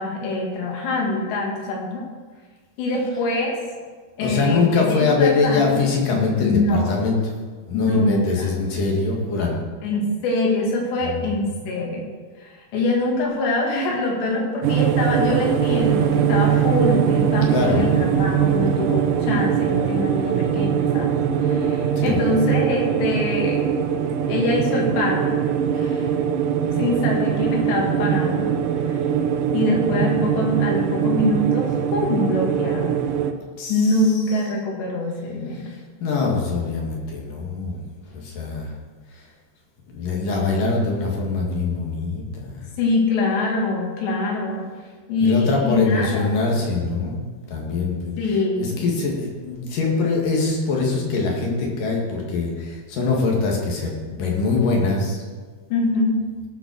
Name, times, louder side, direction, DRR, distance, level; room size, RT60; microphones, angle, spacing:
voice 1, 0.0-2.0 2.8-3.5 4.2-5.8 6.4-7.0 7.7-8.5 9.8-12.1 12.4-21.1 21.4-23.6 24.3-25.3 25.7-26.1 26.8-28.5 28.9-29.0 29.5-33.0 33.7-35.7 42.8-44.6 45.1-46.4 48.2-48.8 55.7-56.2, left 2 dB, 85° left, -1 dB, 4.4 m, -24 dB
voice 2, 4.2-7.3 7.7-9.6 11.0-11.4 17.5-17.9 22.0-22.2 33.6-34.5 35.5-38.7 39.9-42.7 45.2-47.2 47.5-55.2, left 4 dB, 55° left, -1 dB, 3.5 m, -23 dB
sound 1, 14.6-33.3, right 8 dB, 85° right, 1.9 m, -21 dB
17.5 x 5.9 x 6.4 m, 1.4 s
omnidirectional pair, 4.8 m